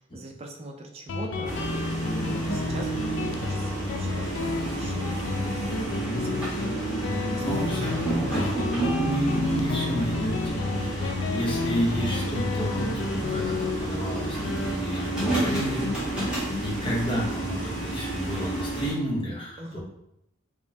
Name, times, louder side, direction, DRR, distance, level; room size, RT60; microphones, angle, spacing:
voice 1, 0.1-1.6 2.0-5.2 5.9-8.2 8.4-8.8 19.6-19.8, right 1 dB, 30° right, 2 dB, 0.5 m, -42 dB
Guitar, 1.1-18.3, left 3 dB, 75° left, 0.4 m, -31 dB
sound 1, 1.4-18.9, right 2 dB, 5° right, 1.3 m, -31 dB
voice 2, 5.8-6.5 7.3-19.8, equal, 25° left, -4 dB, 0.9 m, -31 dB
5.1 x 2.2 x 2.7 m, 0.79 s
head